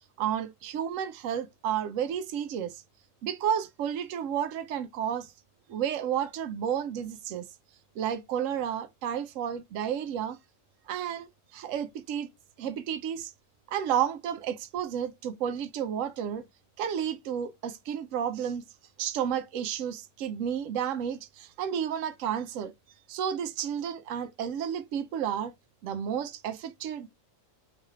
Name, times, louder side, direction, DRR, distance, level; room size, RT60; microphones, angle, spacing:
voice 1, 0.2-2.8 3.2-5.3 5.7-7.5 8.0-10.4 10.9-12.3 12.6-13.3 13.7-16.5 16.8-18.6 19.0-22.7 23.1-25.5 25.8-27.1, right 9 dB, 75° right, 0.9 m, -31 dB
4.8 x 3.1 x 2.3 m
omnidirectional pair, 1.4 m